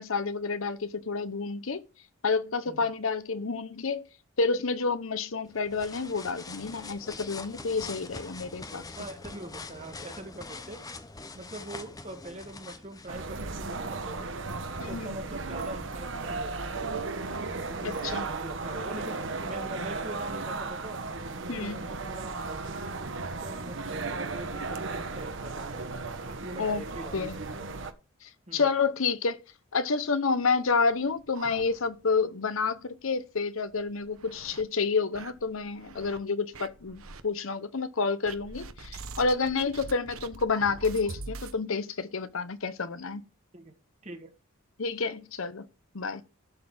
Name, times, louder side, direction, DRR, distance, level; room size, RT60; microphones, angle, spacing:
voice 1, 0.0-1.8 2.2-4.0 4.4-8.8 14.8-15.1 17.8-18.2 21.5-21.8 26.6-26.8 27.1-27.4 28.5-29.4 29.7-43.2 44.8-45.7 45.9-46.2, left 4 dB, 75° left, 0.9 m, -29 dB
sound 1, 5.5-13.2, left 3 dB, 15° left, 0.7 m, -43 dB
voice 2, 8.9-10.8 11.3-14.3 14.8-16.8 17.5-19.2 19.4-21.0 21.4-22.4 23.1-25.8 26.3-27.7 28.5-28.7 43.5-43.7 44.0-44.3, right 1 dB, 30° right, 1.7 m, -43 dB
sound 2, 13.1-27.9, right 3 dB, 60° right, 1.1 m, -35 dB
sound 3, 30.6-32.2 32.5-32.6 33.0-33.1 33.7-34.6 35.1-36.2 36.5-37.2 38.2-41.6, right 3 dB, 85° right, 1.0 m, -44 dB
11.5 x 4.1 x 7.1 m
head